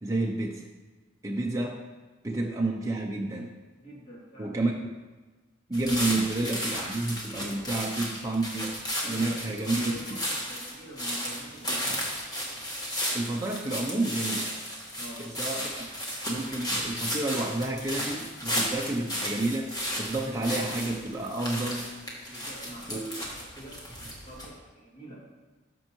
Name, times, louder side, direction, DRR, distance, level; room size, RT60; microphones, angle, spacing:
voice 1, 0.0-0.7 1.2-1.9 2.2-3.5 4.4-4.9 5.7-9.9 13.1-14.6 15.2-15.9 16.3-21.9 22.9-23.2, right 2 dB, 15° right, -1 dB, 0.5 m, -30 dB
voice 2, 3.8-4.6 7.5-7.8 8.9-12.0 14.9-15.3 22.3-25.3, right 1 dB, 45° left, -6 dB, 2.4 m, -46 dB
sound 1, 5.7-24.5, equal, 20° left, 1.3 m, -34 dB
13.5 x 5.3 x 3.0 m, 1.3 s
head